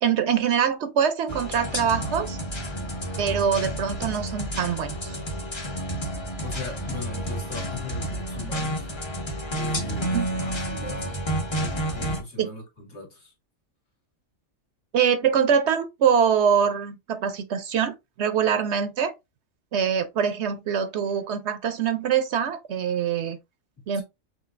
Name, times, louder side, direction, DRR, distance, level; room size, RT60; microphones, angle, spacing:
voice 1, 0.0-2.4 3.2-5.2 10.1-10.2 12.4-12.5 14.9-19.1 19.7-23.4 23.9-24.0, right 7 dB, 65° right, 0.8 m, -24 dB
sound 1, 1.3-12.2, right 1 dB, 25° left, 0.8 m, -30 dB
voice 2, 6.4-8.9 9.5-11.2 11.5-13.3 23.9-24.0, left 3 dB, 65° left, 2.2 m, -38 dB
6.1 x 2.7 x 2.4 m
omnidirectional pair, 1.3 m